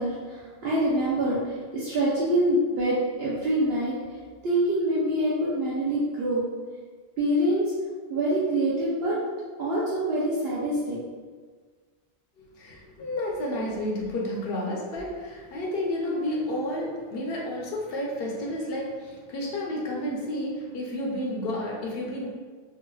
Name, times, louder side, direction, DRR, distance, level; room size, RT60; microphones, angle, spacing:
voice 1, 0.0-3.9 4.4-6.4 7.2-7.6 8.1-9.1 9.6-11.0, right 1 dB, 70° right, -7 dB, 0.9 m, -25 dB
voice 2, 12.4-22.3, left 1 dB, 65° left, -2 dB, 0.9 m, -31 dB
4.7 x 2.4 x 2.3 m, 1.5 s
omnidirectional pair, 1.1 m